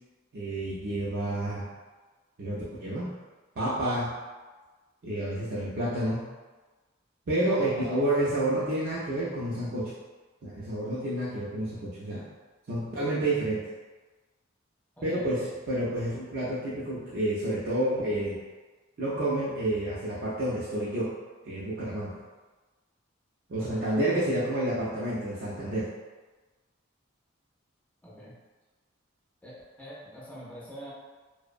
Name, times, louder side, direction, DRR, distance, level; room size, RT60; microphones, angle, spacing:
voice 1, 0.3-1.7 2.4-3.1 3.6-4.1 5.0-6.2 7.3-9.9 10.4-12.3 12.7-13.7 15.0-18.4 19.0-21.1 21.4-22.2 23.5-25.9, right 1 dB, 50° right, -8 dB, 0.4 m, -29 dB
voice 2, 7.5-8.0 15.0-15.5 23.6-23.9 28.0-28.4 29.4-30.9, equal, 5° left, -6 dB, 0.4 m, -44 dB
2.5 x 2.1 x 2.4 m, 1.3 s
head